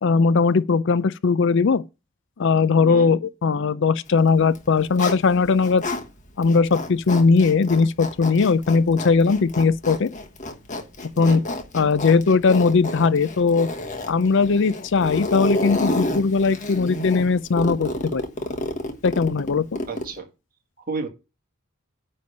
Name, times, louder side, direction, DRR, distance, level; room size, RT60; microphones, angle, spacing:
voice 1, 0.0-1.8 2.4-5.8 6.4-10.1 11.2-11.4 11.7-13.7 14.1-18.2 19.0-19.8, left 4 dB, 55° left, 0.5 m, -19 dB
voice 2, 2.8-3.2 11.1-11.5 19.9-20.3 20.9-21.1, right 3 dB, 40° right, 1.7 m, -31 dB
Zipper (clothing), 4.4-6.0 6.4-20.2, left 1 dB, 35° left, 1.2 m, -30 dB
9.5 x 3.4 x 6.7 m
head